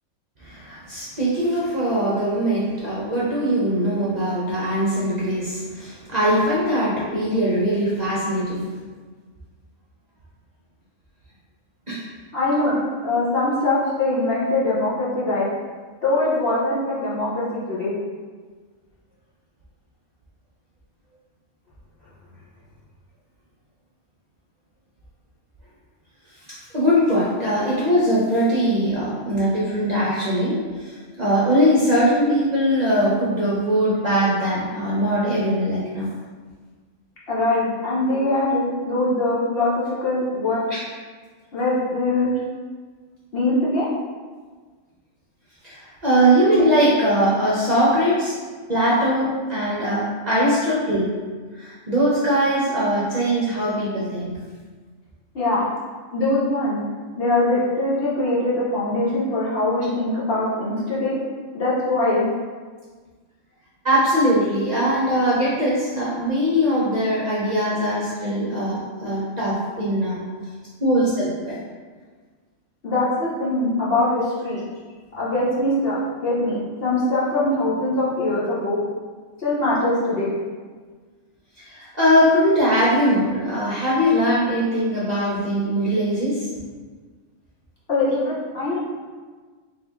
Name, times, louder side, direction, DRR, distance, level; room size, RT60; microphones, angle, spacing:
voice 1, 0.4-8.7 11.9-12.0 26.5-36.1 40.7-40.8 45.6-48.3 48.7-51.1 51.6-54.3 63.8-70.2 70.8-71.6 81.6-86.5, equal, 40° right, -8 dB, 0.7 m, -21 dB
voice 2, 12.3-15.5 16.0-17.9 37.3-40.6 41.5-42.3 43.3-43.9 55.3-55.6 56.1-56.8 57.1-61.2 61.5-62.2 72.8-74.6 75.2-78.8 79.4-80.3 87.9-88.8, left 2 dB, 50° left, -8 dB, 1.0 m, -22 dB
3.6 x 2.7 x 3.5 m, 1.5 s
omnidirectional pair, 1.4 m